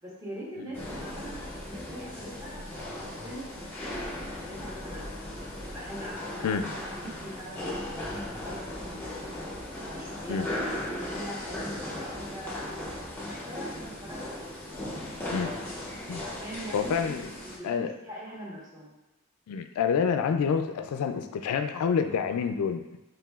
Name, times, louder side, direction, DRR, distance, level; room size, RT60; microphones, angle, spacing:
voice 1, 0.0-5.1 5.7-9.5 9.9-12.6 13.2-14.8 16.2-19.0, equal, 15° right, -7 dB, 1.1 m, -43 dB
sound 1, 0.7-17.6, left 1 dB, 10° left, 0.7 m, -37 dB
voice 2, 16.7-17.3 17.6-17.9 19.5-22.8, left 6 dB, 80° left, 12 dB, 0.3 m, -27 dB
4.8 x 3.2 x 2.3 m, 0.96 s
head